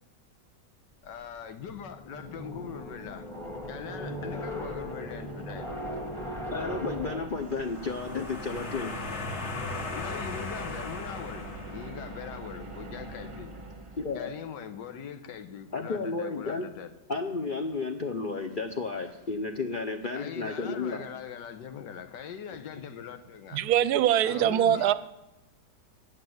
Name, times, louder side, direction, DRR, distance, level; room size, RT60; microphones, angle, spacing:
voice 1, 1.0-3.3 3.7-5.7 9.9-13.5 14.1-16.9 20.1-23.6 24.2-24.9, left 8 dB, 90° left, 9 dB, 1.5 m, -41 dB
sound 1, 1.6-7.2, equal, ahead, 1.1 m, -38 dB
sound 2, 1.9-14.7, right 1 dB, 35° right, 0.5 m, -44 dB
voice 2, 6.5-9.0 14.0-14.3 15.7-16.7 17.1-21.0, left 4 dB, 60° left, 4 dB, 0.5 m, -32 dB
sound 3, 7.6-12.3, left 3 dB, 45° left, 1.4 m, -38 dB
voice 3, 23.5-24.9, right 11 dB, 70° right, 15 dB, 1.0 m, -23 dB
9.1 x 8.5 x 7.7 m, 0.99 s
omnidirectional pair, 1.9 m